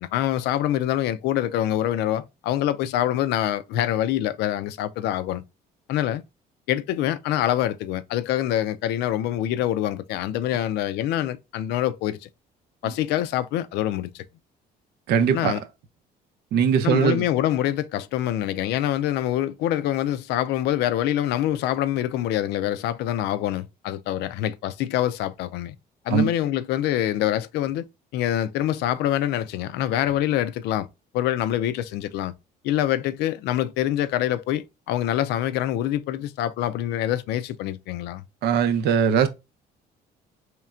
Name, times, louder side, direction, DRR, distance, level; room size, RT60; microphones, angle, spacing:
voice 1, 0.0-5.4 5.9-6.2 6.7-12.3 12.8-14.2 15.3-15.6 16.8-25.8 26.1-27.9 28.1-30.9 31.1-32.3 32.6-38.2, left 12 dB, 80° left, 0.4 m, -25 dB
voice 2, 15.1-15.5 16.5-17.2 26.1-26.3 38.4-39.3, right 7 dB, 75° right, 0.6 m, -20 dB
4.4 x 3.2 x 2.4 m
cardioid pair, 110°, 17 cm